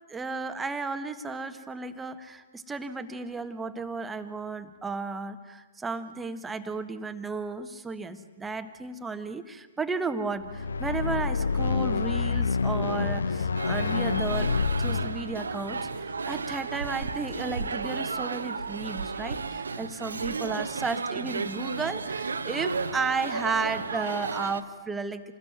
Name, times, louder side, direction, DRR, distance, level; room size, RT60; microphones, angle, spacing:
voice 1, 0.1-14.5 14.8-25.2, right 4 dB, 10° right, 8 dB, 1.5 m, -33 dB
sound 1, 10.4-16.8, left 4 dB, 70° left, 0.8 m, -28 dB
sound 2, 13.5-24.6, right 4 dB, 70° right, 1.2 m, -33 dB
27.5 x 20.0 x 9.4 m, 1.3 s
figure-of-eight pair, 115°, 0 cm